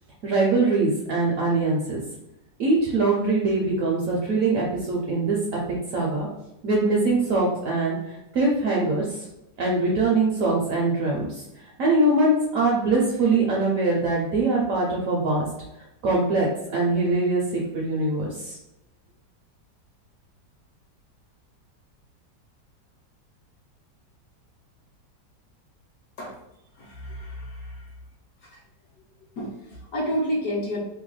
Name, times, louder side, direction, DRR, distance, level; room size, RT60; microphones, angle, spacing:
voice 1, 0.2-2.0 2.6-5.6 5.9-6.3 6.6-9.1 9.6-11.4 11.8-15.5 16.0-18.6, right 2 dB, 65° right, -3 dB, 0.8 m, -23 dB
voice 2, 26.8-27.9 28.4-28.6 29.4-30.8, equal, 65° left, -2 dB, 1.0 m, -30 dB
3.0 x 2.1 x 3.1 m, 0.89 s
omnidirectional pair, 1.9 m